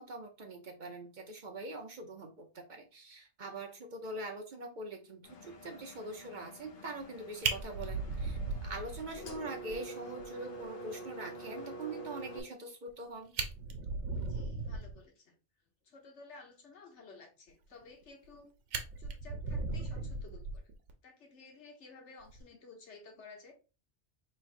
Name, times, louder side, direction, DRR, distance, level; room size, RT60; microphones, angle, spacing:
voice 1, 0.0-13.3, right 2 dB, 50° right, 3 dB, 0.7 m, -43 dB
Engine, 5.2-12.4, right 1 dB, 55° left, 0.8 m, -47 dB
Fire, 7.0-7.1 7.4-9.4 9.7-9.8 10.2-10.3 10.6-10.7 12.9-13.0 13.3-15.0 17.8-18.3 18.7-20.9 22.2-22.4, right 4 dB, 90° right, 1.0 m, -37 dB
voice 2, 14.2-15.3 15.8-18.5 19.0-20.7 21.0-23.5, left 3 dB, 80° left, 2 dB, 1.3 m, -54 dB
4.5 x 3.2 x 2.5 m, 0.32 s
omnidirectional pair, 1.2 m